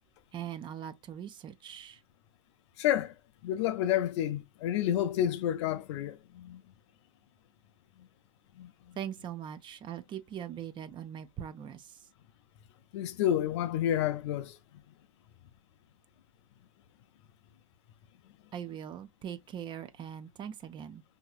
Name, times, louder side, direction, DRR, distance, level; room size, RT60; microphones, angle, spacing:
voice 1, 0.3-2.0 9.0-12.0 18.5-21.0, right 9 dB, 25° right, 0.6 m, -41 dB
voice 2, 2.8-3.1 3.4-6.6 8.6-8.7 12.9-14.6, left 11 dB, 50° left, 0.6 m, -29 dB
5.4 x 2.7 x 2.4 m
figure-of-eight pair, 85°, 18 cm